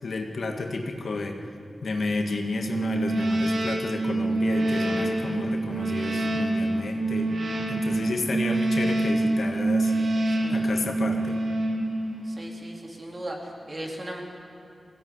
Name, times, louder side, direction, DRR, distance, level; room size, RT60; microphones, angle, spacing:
voice 1, 0.0-1.4 1.8-7.3 7.7-9.9 10.5-11.4, left 3 dB, 60° left, 3 dB, 2.1 m, -31 dB
sound 1, 2.6-12.5, right 2 dB, 70° right, 3.0 m, -26 dB
voice 2, 10.3-10.7 12.2-14.2, right 1 dB, 25° right, 0 dB, 3.6 m, -37 dB
22.5 x 17.0 x 9.9 m, 2.6 s
wide cardioid pair, 125°, 0 cm